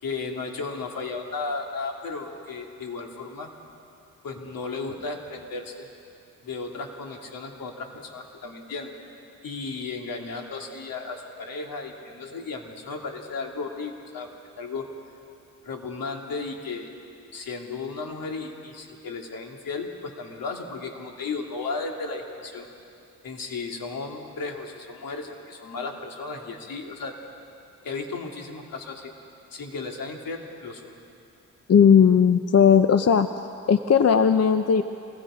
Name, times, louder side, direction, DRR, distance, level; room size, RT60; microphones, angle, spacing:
voice 1, 0.0-3.5 4.2-5.9 6.4-8.9 9.4-14.3 14.6-14.9 15.6-16.9 17.3-22.7 23.2-27.2 27.8-29.1 29.5-31.0, left 4 dB, 75° left, 2 dB, 2.6 m, -34 dB
voice 2, 31.7-33.3 33.7-34.8, left 7 dB, 45° left, 9 dB, 0.8 m, -17 dB
27.5 x 20.5 x 5.0 m, 2.6 s
cardioid pair, 65°, 35 cm